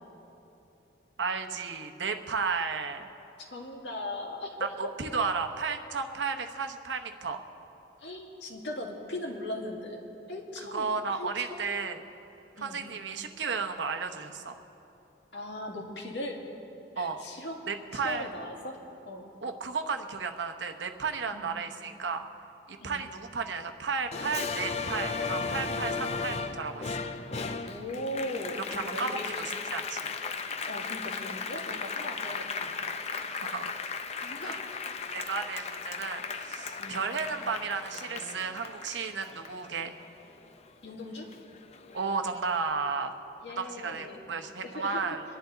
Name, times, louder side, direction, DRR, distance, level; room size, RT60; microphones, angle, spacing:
voice 1, 1.2-3.1 4.6-7.4 10.7-12.0 12.6-14.6 17.0-17.2 17.7-18.3 19.4-22.2 22.7-27.0 28.7-30.0 30.5-30.6 32.2-32.3 33.3-33.7 34.4-34.6 35.1-39.9 41.9-43.1 43.6-45.2, right 5 dB, 75° right, 6 dB, 0.9 m, -33 dB
voice 2, 3.5-4.7 8.0-10.0 10.3-11.6 12.5-12.9 15.3-16.4 17.0-17.6 18.0-18.8 19.1-19.2 21.3-21.5 22.8-23.0 27.7-29.2 30.7-32.8 34.2-34.8 36.8-37.0 40.8-41.3 43.4-44.2 44.6-45.0, left 1 dB, 70° left, 0 dB, 2.0 m, -38 dB
Applause, 24.1-40.9 41.3-42.5, left 5 dB, 35° left, 0.5 m, -36 dB
23.0 x 10.5 x 3.9 m, 2.9 s
head